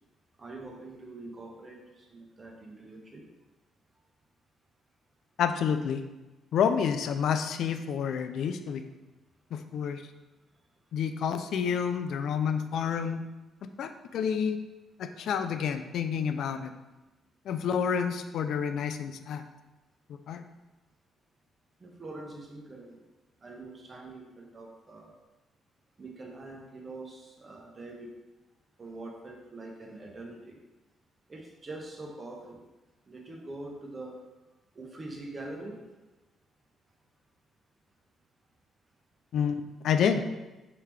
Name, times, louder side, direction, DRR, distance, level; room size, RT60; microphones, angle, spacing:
voice 1, 0.4-3.3 17.0-17.1 21.8-23.0 23.4-25.2 26.0-28.1 28.8-30.6 31.3-32.6 33.1-34.2 34.7-35.8, right 2 dB, 35° right, 0 dB, 1.0 m, -44 dB
voice 2, 5.4-6.0 6.5-8.9 9.5-10.0 10.9-13.2 13.8-14.6 15.0-16.7 17.5-19.4 20.3-20.4 39.3-40.2, left 7 dB, 75° left, 8 dB, 0.3 m, -29 dB
4.7 x 3.5 x 3.2 m, 1.1 s
cardioid pair, 90°, 0 cm